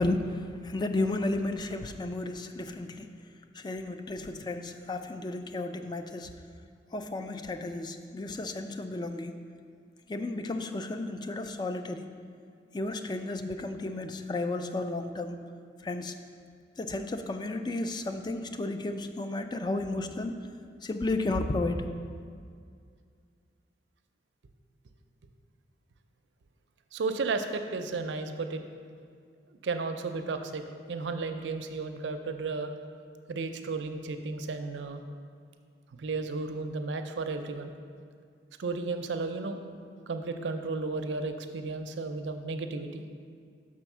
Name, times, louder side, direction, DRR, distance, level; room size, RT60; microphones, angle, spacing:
voice 1, 0.0-3.2 3.5-6.3 6.9-9.4 10.1-12.1 12.7-15.4 15.8-16.2 16.8-20.3 20.8-21.8, left 2 dB, 25° left, 7 dB, 0.3 m, -33 dB
voice 2, 26.9-28.6 29.5-30.6 30.9-32.7 33.3-35.0 36.0-37.7 38.6-39.6 40.1-43.0, right 3 dB, 90° right, 7 dB, 0.5 m, -33 dB
6.1 x 4.4 x 6.0 m, 2.2 s
head